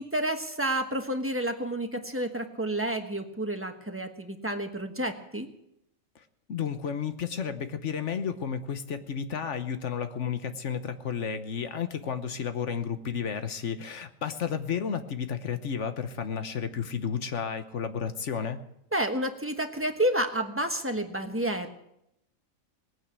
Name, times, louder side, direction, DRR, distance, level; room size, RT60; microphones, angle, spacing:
voice 1, 0.0-5.5 18.9-21.7, right 1 dB, 10° right, 5 dB, 1.2 m, -30 dB
voice 2, 6.5-18.6, left 7 dB, 60° left, 9 dB, 1.3 m, -32 dB
19.0 x 9.2 x 8.2 m, 0.80 s
omnidirectional pair, 1.4 m